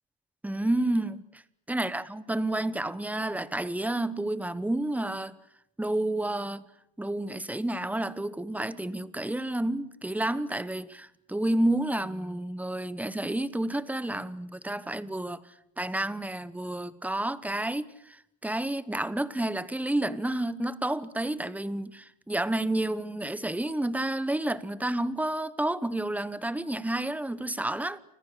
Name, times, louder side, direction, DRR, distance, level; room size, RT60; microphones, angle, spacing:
voice 1, 0.4-1.4 1.7-5.4 5.8-6.6 7.0-15.4 15.8-28.0, right 1 dB, 5° right, 1.0 m, -30 dB
30.0 x 25.5 x 6.6 m
cardioid pair, 145°, 42 cm